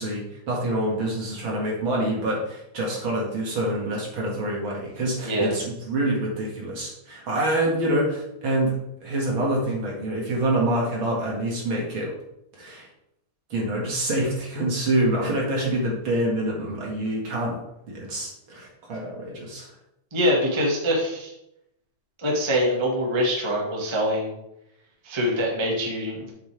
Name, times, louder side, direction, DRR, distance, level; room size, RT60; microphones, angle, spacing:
voice 1, 0.0-8.8 9.0-12.1 12.6-12.9 13.5-17.6 17.9-19.7, right 1 dB, 45° right, -3 dB, 2.3 m, -26 dB
voice 2, 5.2-5.6 20.1-21.3 22.2-24.3 25.0-26.3, equal, 15° right, -3 dB, 0.9 m, -24 dB
8.0 x 8.0 x 3.5 m, 0.83 s
omnidirectional pair, 3.8 m